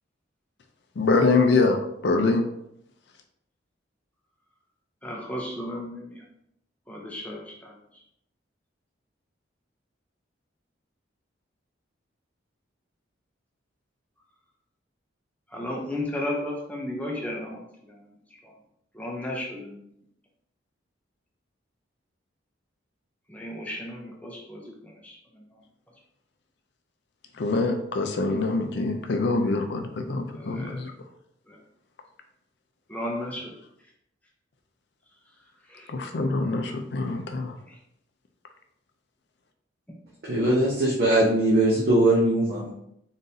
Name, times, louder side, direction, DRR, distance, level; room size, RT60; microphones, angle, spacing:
voice 1, 1.0-2.5 27.4-30.9 35.9-37.6, left 3 dB, 55° left, 5 dB, 0.4 m, -24 dB
voice 2, 5.0-6.2 6.9-7.7 15.5-18.0 18.4-18.5 18.9-19.8 23.3-24.7 25.0-25.2 30.3-30.8 31.5-31.6 32.9-33.5 35.7-35.9 37.7-37.8, left 1 dB, 5° left, -2 dB, 0.5 m, -34 dB
voice 3, 40.3-42.7, right 1 dB, 50° right, -5 dB, 0.8 m, -21 dB
3.9 x 3.9 x 2.7 m, 0.75 s
head